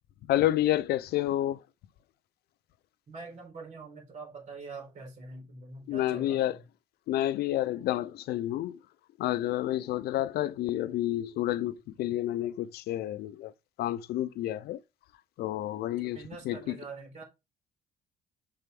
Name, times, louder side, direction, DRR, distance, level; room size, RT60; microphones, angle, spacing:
voice 1, 0.3-1.6 5.9-6.6 7.1-8.8 9.2-13.5 13.8-14.8 15.4-16.2 16.5-16.6, left 13 dB, 70° left, 0.5 m, -29 dB
voice 2, 3.1-6.6 16.1-17.2, right 4 dB, 45° right, 4.0 m, -44 dB
6.7 x 4.3 x 3.5 m
cardioid pair, 110°, 17 cm